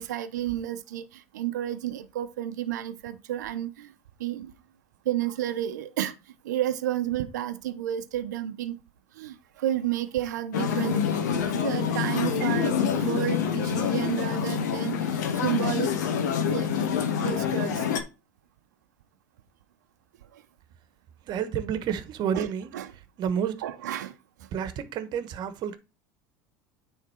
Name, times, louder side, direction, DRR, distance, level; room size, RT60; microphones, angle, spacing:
voice 1, 0.0-3.9 4.2-4.5 5.0-6.1 6.4-8.8 9.1-16.0 16.3-16.8 17.2-17.8 20.3-20.4 22.3-22.5 22.7-22.9 23.6-24.1, right 12 dB, 85° right, 0.8 m, -31 dB
sound 1, 10.5-18.0, left 7 dB, 80° left, 1.0 m, -26 dB
voice 2, 21.2-22.7 23.2-23.6 24.5-25.8, right 8 dB, 50° right, 1.2 m, -30 dB
9.3 x 3.6 x 4.5 m
hypercardioid pair, 90°, 9 cm